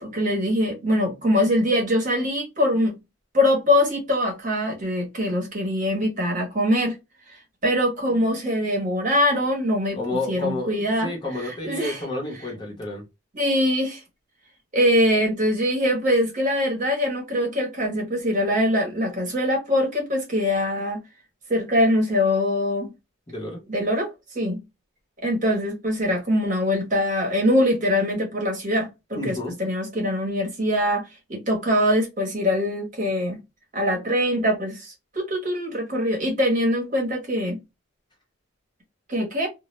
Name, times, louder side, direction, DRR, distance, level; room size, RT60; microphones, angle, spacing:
voice 1, 0.0-3.0 3.3-7.0 7.3-7.4 7.6-11.1 11.3-12.0 13.3-14.0 14.7-21.0 21.5-22.9 23.7-24.6 25.2-33.4 33.7-37.6 39.1-39.5, left 1 dB, 35° right, 0.8 m, -23 dB
voice 2, 10.0-13.0 23.3-23.6 29.1-29.5, left 2 dB, 20° left, 0.7 m, -30 dB
2.1 x 2.0 x 2.9 m
head